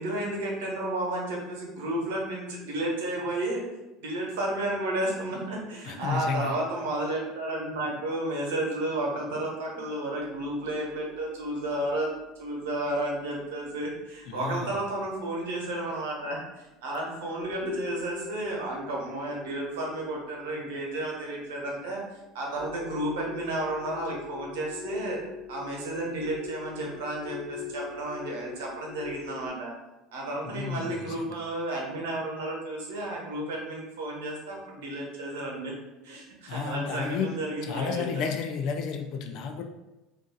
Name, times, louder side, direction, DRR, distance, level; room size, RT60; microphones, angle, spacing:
voice 1, 0.0-3.6 4.0-12.1 12.4-25.2 25.5-29.7 30.1-35.7 36.0-38.2, right 1 dB, 75° right, -2 dB, 0.9 m, -32 dB
voice 2, 5.8-6.6 14.3-14.7 30.4-31.3 36.5-37.3 37.6-39.6, left 6 dB, 60° left, 5 dB, 0.4 m, -32 dB
sound 1, 10.2-14.1 14.5-14.6 15.7-15.8 16.3-16.4 16.9-17.1 17.4-29.5, left 5 dB, 80° left, 1.1 m, -43 dB
2.5 x 2.4 x 3.8 m, 1.0 s
hypercardioid pair, 80°, 0 cm